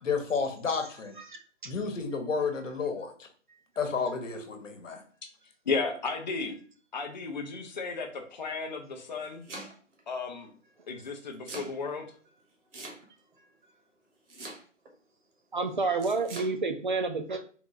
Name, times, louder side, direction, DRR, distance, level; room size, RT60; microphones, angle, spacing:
voice 1, 0.0-1.1 1.6-3.1 3.8-5.0, left 5 dB, 75° left, 5 dB, 1.0 m, -31 dB
voice 2, 5.7-6.6 6.9-9.5 10.1-10.5 10.9-12.0, left 4 dB, 35° left, 4 dB, 0.5 m, -34 dB
Domestic sounds home sounds, 9.0-10.0 11.0-11.7 12.7-13.3 14.3-14.9 16.0-16.5, right 2 dB, 65° right, 1.2 m, -43 dB
voice 3, 15.5-17.4, right 3 dB, 40° right, 6 dB, 0.4 m, -29 dB
3.6 x 2.4 x 3.0 m, 0.43 s
hypercardioid pair, 160°, 38 cm